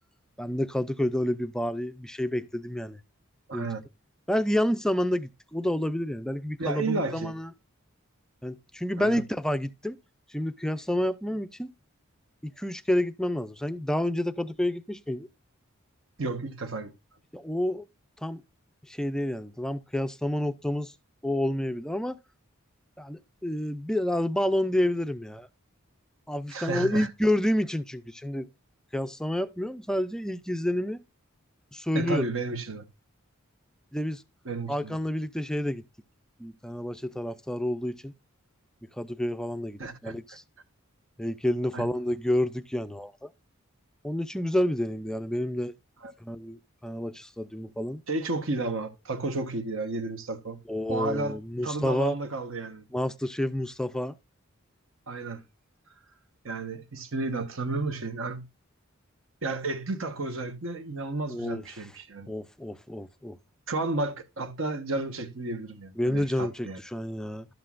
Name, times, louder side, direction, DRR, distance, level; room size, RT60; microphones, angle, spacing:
voice 1, 0.4-3.0 3.5-3.7 4.3-7.5 8.4-10.0 10.3-11.7 12.4-15.3 17.3-17.9 18.2-18.4 18.9-20.9 21.2-22.2 23.0-25.5 26.3-28.5 28.9-31.0 31.7-32.2 33.9-34.2 34.7-35.8 36.4-38.1 39.0-40.4 41.2-43.3 44.0-45.7 46.2-48.0 50.7-52.2 52.9-54.2 61.3-61.9 62.3-63.4 66.0-67.5, left 1 dB, 5° left, 0.4 m, -29 dB
voice 2, 3.5-3.8 6.6-7.3 9.0-9.2 16.2-16.9 26.5-27.1 31.9-32.8 34.4-35.0 39.8-40.1 41.7-41.8 46.0-46.1 48.1-50.6 50.9-52.8 55.1-55.4 56.4-58.4 59.4-62.3 63.7-66.8, right 3 dB, 70° right, 1.2 m, -32 dB
12.0 x 7.7 x 2.5 m
head